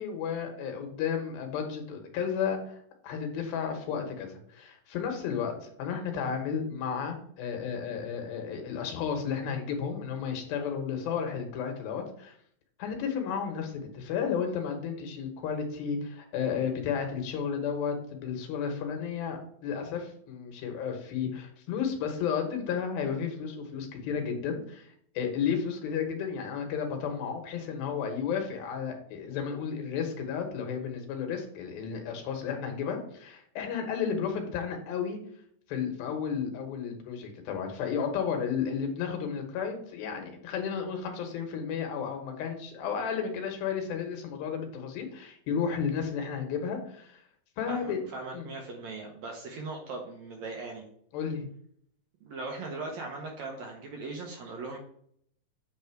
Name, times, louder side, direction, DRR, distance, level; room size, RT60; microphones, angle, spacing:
voice 1, 0.0-2.8 3.0-12.3 12.8-35.2 35.7-47.2 47.6-48.0 48.3-48.5 51.1-51.5, left 7 dB, 85° left, 4 dB, 3.0 m, -33 dB
voice 2, 47.7-50.9 52.2-54.8, right 3 dB, 70° right, 1 dB, 1.8 m, -39 dB
8.5 x 3.4 x 4.5 m, 0.65 s
omnidirectional pair, 4.1 m